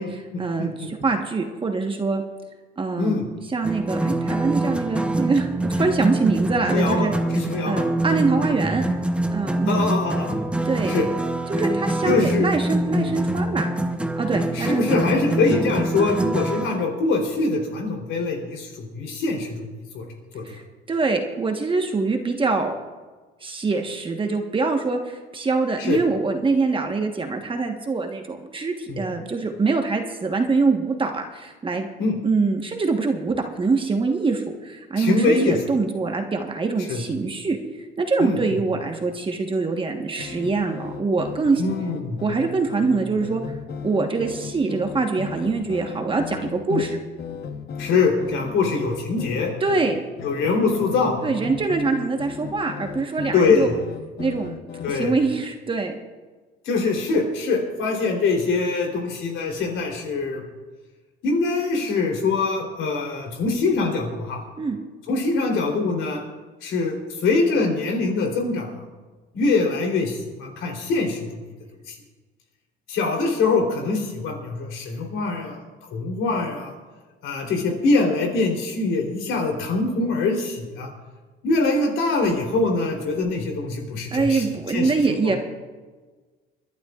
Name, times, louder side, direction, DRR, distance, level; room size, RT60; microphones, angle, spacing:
voice 1, 0.0-2.2 2.8-3.2 3.5-7.1 7.7-8.8 9.3-9.8 10.6-10.9 11.5-13.7 14.2-15.0 20.4-20.6 20.9-22.8 23.4-31.9 32.2-41.6 42.2-43.4 43.8-47.0 49.6-50.0 51.2-53.7 54.2-54.5 54.9-55.9 64.6-64.8 84.1-85.4, right 4 dB, 25° right, 4 dB, 1.3 m, -24 dB
voice 2, 0.6-0.9 3.0-3.2 6.7-7.8 9.7-10.4 10.9-11.1 12.1-12.5 12.9-13.1 14.5-20.0 20.3-20.4 25.8-26.0 28.9-29.0 32.0-32.2 35.0-35.6 36.9-37.0 38.2-38.4 41.6-42.2 46.7-46.8 47.8-49.5 50.2-51.1 53.3-53.8 54.8-55.1 56.7-60.4 61.2-64.4 65.1-66.2 66.6-68.8 69.3-71.5 71.9-72.0 72.9-75.6 75.9-76.7 77.2-80.9 81.4-85.3, left 3 dB, 70° left, 1 dB, 3.5 m, -23 dB
sound 1, 3.6-16.8, right 1 dB, 5° right, 0.7 m, -25 dB
sound 2, 40.0-55.2, left 6 dB, 55° left, 1.1 m, -36 dB
29.0 x 11.5 x 2.4 m, 1.3 s
cardioid pair, 105°, 21 cm